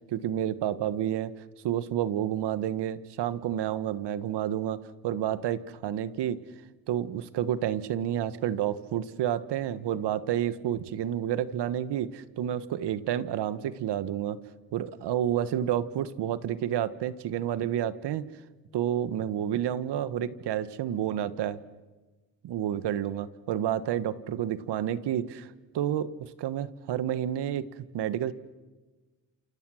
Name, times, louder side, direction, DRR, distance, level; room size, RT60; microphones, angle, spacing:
voice 1, 0.1-1.3 1.6-6.4 6.9-14.4 14.7-18.2 18.7-21.6 22.4-25.5 25.7-27.7 27.9-28.3, right 10 dB, 65° right, 15 dB, 1.5 m, -30 dB
29.5 x 27.5 x 6.4 m, 1.2 s
supercardioid pair, 80°, 43 cm